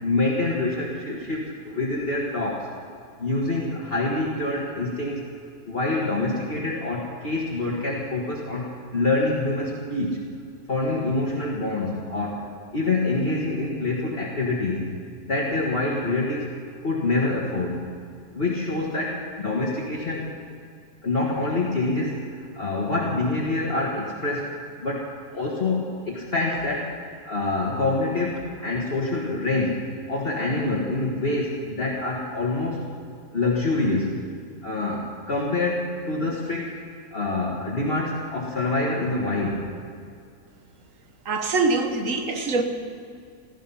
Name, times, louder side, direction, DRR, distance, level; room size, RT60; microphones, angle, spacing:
voice 1, 0.0-2.7 3.2-5.2 5.7-10.3 10.7-12.4 12.7-14.9 15.3-16.5 16.8-17.8 18.3-20.3 21.0-24.5 24.8-26.9 27.2-32.9 33.3-34.1 34.6-36.7 37.1-39.7, left 2 dB, 40° left, -4 dB, 1.8 m, -26 dB
voice 2, 41.3-42.6, right 3 dB, 55° right, 5 dB, 1.6 m, -23 dB
15.5 x 14.5 x 5.6 m, 2.3 s
omnidirectional pair, 1.7 m